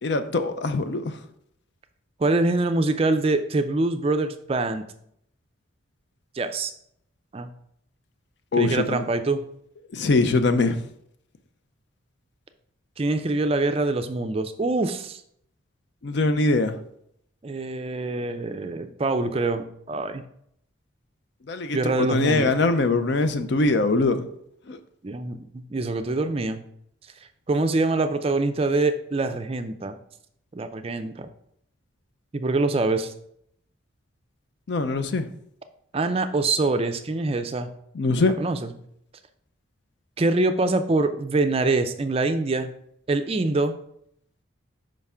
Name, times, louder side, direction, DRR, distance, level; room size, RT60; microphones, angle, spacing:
voice 1, 0.0-1.2 8.5-8.8 9.9-10.9 16.0-16.8 21.5-24.3 24.7-24.8 34.7-35.3 37.9-38.3, left 3 dB, 55° left, 10 dB, 0.5 m, -22 dB
voice 2, 2.2-4.8 6.3-6.7 7.3-7.5 8.6-9.4 13.0-15.2 17.4-20.2 21.7-22.5 25.0-26.6 27.5-30.0 30.5-31.3 32.3-33.1 35.9-37.7 38.4-38.7 40.2-42.7 43.1-43.7, right 2 dB, 30° right, 8 dB, 0.4 m, -24 dB
5.1 x 3.6 x 5.5 m, 0.71 s
head